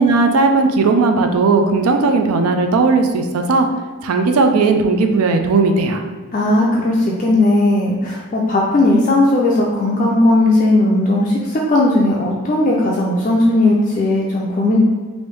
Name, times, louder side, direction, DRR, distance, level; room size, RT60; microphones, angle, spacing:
voice 1, 0.0-3.7 4.0-6.0, right 3 dB, 80° right, 5 dB, 0.4 m, -16 dB
voice 2, 6.3-14.8, left 2 dB, 35° left, -3 dB, 0.3 m, -16 dB
3.1 x 2.6 x 3.2 m, 1.4 s
head